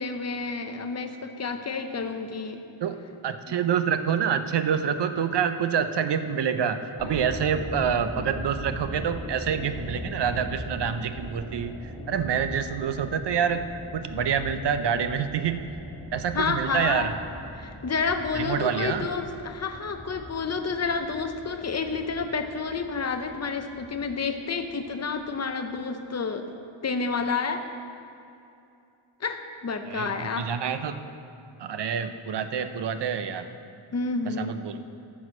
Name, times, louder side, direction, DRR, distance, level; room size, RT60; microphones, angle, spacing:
voice 1, 0.0-2.6 16.3-17.1 17.5-26.4 26.8-27.6 29.2-30.5 33.9-34.6, left 4 dB, 35° left, 7 dB, 0.6 m, -29 dB
voice 2, 3.2-11.7 12.1-13.6 13.9-15.6 16.1-17.1 18.3-19.0 29.9-31.0 31.6-33.5 34.3-34.8, right 7 dB, 55° right, 10 dB, 0.5 m, -27 dB
sound 1, 7.0-25.2 25.4-25.5, left 1 dB, 10° right, 1.2 m, -40 dB
9.3 x 6.2 x 6.1 m, 2.7 s
wide cardioid pair, 175°, 49 cm